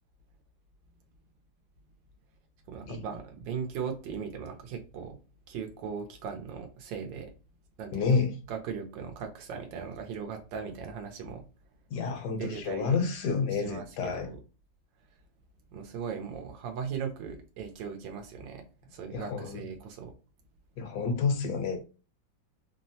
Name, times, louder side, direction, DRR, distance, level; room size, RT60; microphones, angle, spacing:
voice 1, 2.7-5.2 5.5-7.3 7.8-8.1 8.5-11.5 12.4-13.0 13.5-14.4 15.7-18.6 18.9-20.1, right 6 dB, 85° right, 1.3 m, -38 dB
voice 2, 7.9-8.3 11.9-14.3 19.1-19.6 20.8-21.8, left 5 dB, 70° left, 1.1 m, -29 dB
3.3 x 2.0 x 2.6 m
omnidirectional pair, 2.0 m